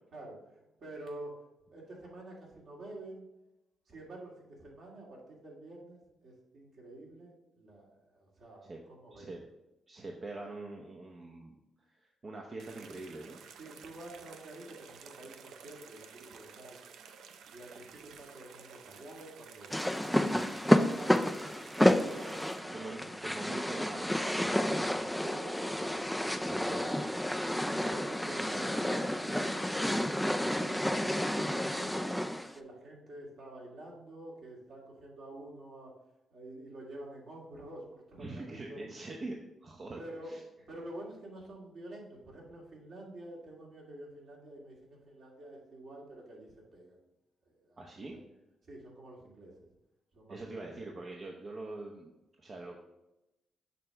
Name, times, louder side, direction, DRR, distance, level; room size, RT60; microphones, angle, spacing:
voice 1, 0.1-1.3 1.7-3.2 3.9-9.4 13.5-16.8 17.5-21.4 21.8-23.4 24.3-26.1 26.4-27.0 27.6-30.1 30.5-32.1 32.5-35.9 36.3-38.8 40.0-40.4 40.7-47.0 47.5-47.8 48.1-48.3 48.6-49.7 50.1-50.7, right 1 dB, 65° right, -3 dB, 2.3 m, -48 dB
voice 2, 9.1-9.4 9.9-13.4 22.7-24.8 26.5-26.8 38.2-40.4 47.8-48.2 50.3-52.1 52.4-52.8, right 2 dB, 40° right, 1 dB, 0.8 m, -44 dB
sound 1, 12.6-22.6, right 6 dB, 80° right, 0.5 m, -53 dB
sound 2, 19.7-32.5, left 1 dB, 5° left, 0.4 m, -30 dB
6.6 x 3.3 x 5.8 m, 0.94 s
cardioid pair, 70°, 0 cm